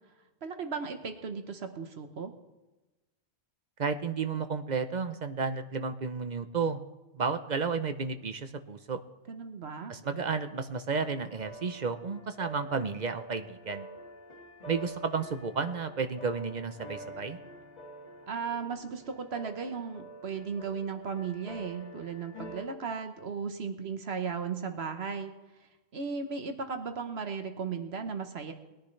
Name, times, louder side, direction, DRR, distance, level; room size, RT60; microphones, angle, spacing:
voice 1, 0.4-2.3 9.3-9.9 18.3-25.3 25.9-28.5, right 5 dB, 70° right, 7 dB, 1.3 m, -36 dB
voice 2, 3.8-6.8 7.1-9.0 9.9-13.9 14.7-17.4, right 5 dB, 45° right, 9 dB, 0.8 m, -32 dB
sound 1, 11.1-22.7, right 1 dB, 40° left, 1.8 m, -47 dB
20.5 x 10.0 x 3.3 m, 1.1 s
omnidirectional pair, 1.1 m